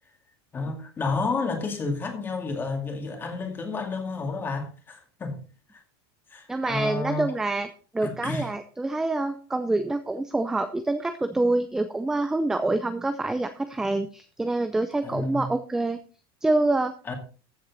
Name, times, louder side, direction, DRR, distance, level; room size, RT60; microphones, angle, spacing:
voice 1, 0.5-5.4 5.7-5.8 6.3-7.3 8.0-8.5 15.0-15.5 17.0-17.1, left 3 dB, 15° left, 2.2 m, -31 dB
voice 2, 6.5-7.7 7.9-16.0 16.4-16.9, right 2 dB, 5° right, 0.5 m, -26 dB
14.5 x 7.4 x 4.1 m
supercardioid pair, 170°, 13 cm